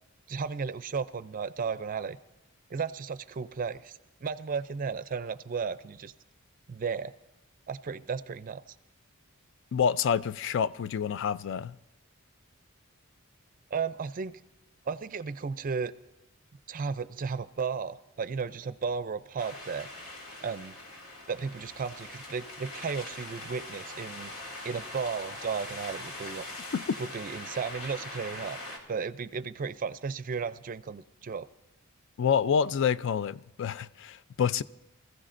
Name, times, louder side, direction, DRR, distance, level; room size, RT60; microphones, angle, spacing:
voice 1, 0.3-2.2 2.7-6.1 6.7-7.1 7.7-8.8 13.7-14.4 14.9-15.9 16.7-19.9 20.4-20.8 21.3-24.3 24.6-26.4 27.0-28.6 28.9-31.5, right 5 dB, 40° right, 0.4 m, -34 dB
voice 2, 9.7-11.8 26.7-27.0 32.2-34.6, left 7 dB, 60° left, 0.4 m, -28 dB
sound 1, 19.4-28.8, left 2 dB, 90° left, 2.4 m, -42 dB
25.0 x 15.0 x 2.5 m
head